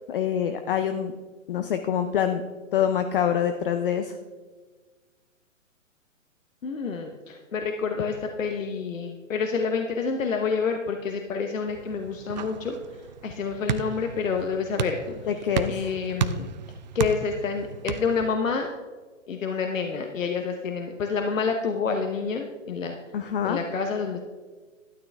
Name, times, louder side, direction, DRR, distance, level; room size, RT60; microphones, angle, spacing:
voice 1, 0.1-1.1 1.5-2.4 2.7-4.2 15.3-15.8 23.1-23.6, left 9 dB, 45° left, 7 dB, 0.6 m, -25 dB
voice 2, 6.6-12.8 13.2-15.0 15.7-16.5 16.9-18.7 19.3-23.0 23.4-24.2, left 5 dB, 75° left, 4 dB, 1.1 m, -28 dB
sound 1, 11.7-18.3, right 7 dB, 35° right, 0.5 m, -33 dB
12.5 x 8.9 x 3.5 m, 1.4 s
hypercardioid pair, 135°, 39 cm